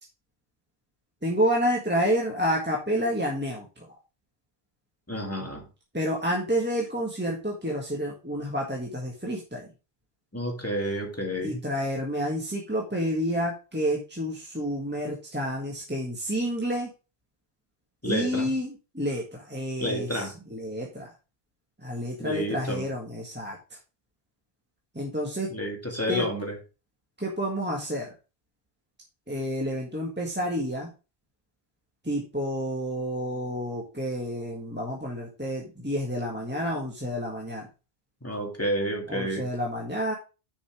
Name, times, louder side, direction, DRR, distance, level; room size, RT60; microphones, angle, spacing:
voice 1, 1.2-4.0 5.9-9.7 11.4-16.9 18.0-21.1 21.8-23.6 24.9-25.5 26.1-26.3 27.2-28.1 29.3-30.9 32.0-37.7 39.1-40.1, equal, 10° right, 1.6 m, -29 dB
voice 2, 5.1-5.6 10.3-11.6 18.0-18.5 19.8-20.3 22.2-22.8 25.5-26.6 38.2-39.5, equal, 15° left, 1.9 m, -30 dB
6.6 x 5.5 x 4.9 m
omnidirectional pair, 1.0 m